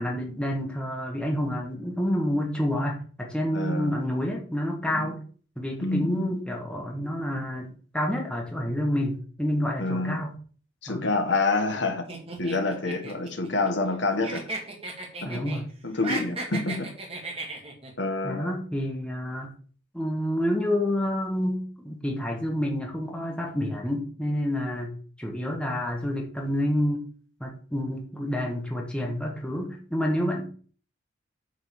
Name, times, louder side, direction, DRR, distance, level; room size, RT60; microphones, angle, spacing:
voice 1, 0.0-5.2 5.6-10.3 10.9-11.0 15.2-15.7 18.2-19.5 19.9-27.0 27.4-30.5, equal, 5° left, 0 dB, 1.5 m, -28 dB
voice 2, 3.5-3.9 4.9-5.1 5.8-6.4 9.8-10.2 10.8-12.1 12.4-14.4 15.2-15.4 15.8-16.9 18.0-18.6, left 3 dB, 65° left, 4 dB, 1.6 m, -27 dB
sound 1, 12.1-14.0 14.2-15.6 15.9-17.9, right 2 dB, 30° right, 2.2 m, -35 dB
9.0 x 3.9 x 6.6 m, 0.43 s
head